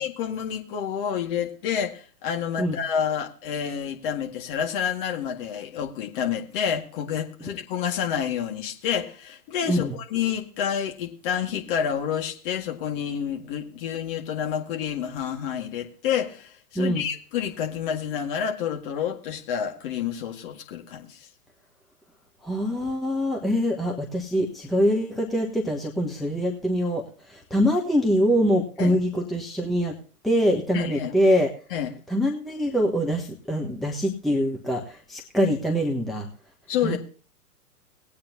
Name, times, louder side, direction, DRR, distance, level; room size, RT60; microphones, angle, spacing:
voice 1, 0.0-21.3 28.8-29.0 30.7-31.1 31.7-31.9 36.7-37.0, left 8 dB, 35° left, 3 dB, 2.0 m, -29 dB
voice 2, 16.7-17.1 22.4-30.0 30.2-31.5 32.1-36.3 36.8-37.0, equal, ahead, 0 dB, 1.1 m, -24 dB
19.5 x 8.7 x 2.8 m, 0.39 s
figure-of-eight pair, 110°, 46 cm